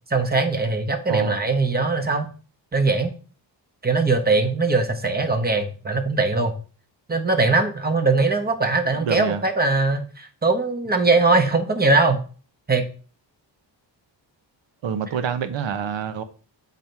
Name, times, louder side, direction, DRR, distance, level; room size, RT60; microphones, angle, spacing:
voice 1, 0.1-2.3 2.7-3.1 3.8-6.5 7.1-12.2 12.7-12.9, right 3 dB, 20° right, 1.0 m, -21 dB
voice 2, 1.1-1.4 8.9-9.4 14.8-16.2, right 7 dB, 75° right, 1.0 m, -27 dB
7.2 x 4.1 x 4.6 m
wide cardioid pair, 120°, 45 cm